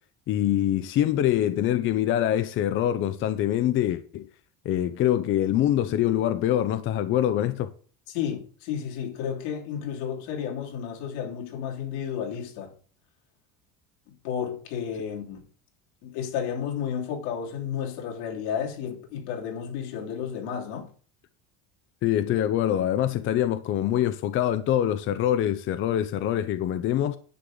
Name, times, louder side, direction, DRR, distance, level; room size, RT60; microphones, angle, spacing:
voice 1, 0.3-4.3 4.6-7.7 22.0-27.2, left 11 dB, 40° left, 0.6 m, -24 dB
voice 2, 8.1-12.7 14.1-15.4 16.0-20.9, left 8 dB, 90° left, 3.2 m, -32 dB
10.0 x 7.6 x 3.8 m
cardioid pair, 160°, 33 cm